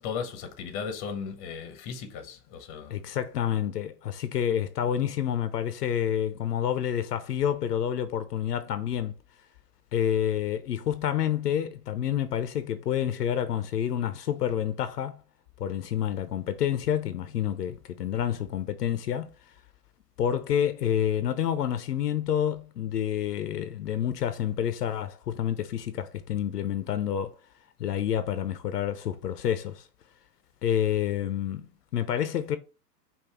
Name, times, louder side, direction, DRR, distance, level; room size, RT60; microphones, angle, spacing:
voice 1, 0.0-3.1, left 6 dB, 25° left, 0.9 m, -36 dB
voice 2, 2.9-9.2 9.9-15.2 15.6-19.3 20.2-27.3 27.8-29.9 30.6-32.6, left 9 dB, 70° left, 0.7 m, -28 dB
5.3 x 2.6 x 3.6 m
hypercardioid pair, 115°, 49 cm